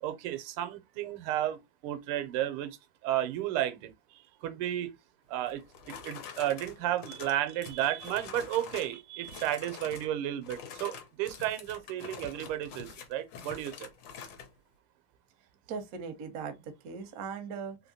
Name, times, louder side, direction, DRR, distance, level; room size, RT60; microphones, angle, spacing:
voice 1, 0.0-2.8 3.0-5.0 5.3-13.9, right 12 dB, 90° right, 1.5 m, -33 dB
sound 1, 5.5-9.0 9.2-10.1 10.4-14.5, left 6 dB, 70° left, 1.4 m, -46 dB
voice 2, 15.7-17.8, right 6 dB, 65° right, 0.8 m, -39 dB
3.6 x 2.8 x 2.7 m
omnidirectional pair, 2.3 m